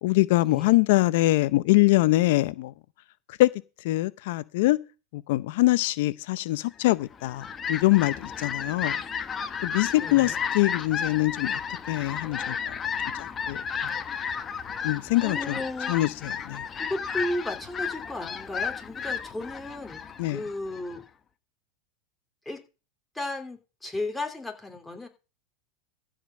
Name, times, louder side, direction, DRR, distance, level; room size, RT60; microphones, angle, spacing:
voice 1, 0.0-2.7 3.3-3.5 3.8-4.8 5.1-9.0 9.6-11.6 11.9-12.9 13.2-13.9 14.8-15.6 15.9-16.6 20.2-20.4, left 18 dB, 70° left, 0.7 m, -24 dB
Fowl, 7.0-21.0, left 7 dB, 25° left, 1.2 m, -33 dB
voice 2, 9.9-10.4 13.9-14.0 15.2-16.0 16.7-20.0 20.3-21.0 22.4-22.6 23.1-25.1, left 2 dB, 5° left, 3.1 m, -34 dB
15.0 x 5.0 x 7.4 m
supercardioid pair, 125°, 0 cm